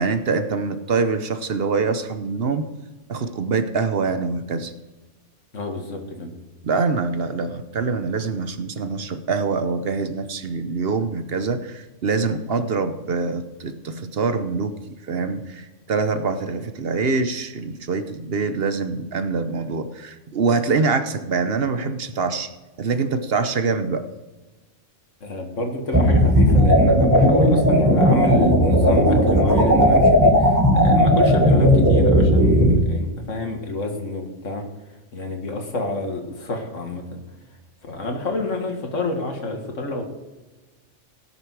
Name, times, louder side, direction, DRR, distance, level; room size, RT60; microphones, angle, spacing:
voice 1, 0.0-2.6 3.1-4.7 6.6-14.8 15.1-22.5 22.8-24.1, right 4 dB, 55° right, 9 dB, 1.0 m, -24 dB
voice 2, 5.5-6.3 25.2-34.7 35.1-37.2 37.9-40.0, left 2 dB, 80° left, 3 dB, 2.2 m, -28 dB
sound 1, 25.9-32.7, equal, 15° right, 1.7 m, -15 dB
17.5 x 7.0 x 4.7 m, 1.1 s
omnidirectional pair, 1.3 m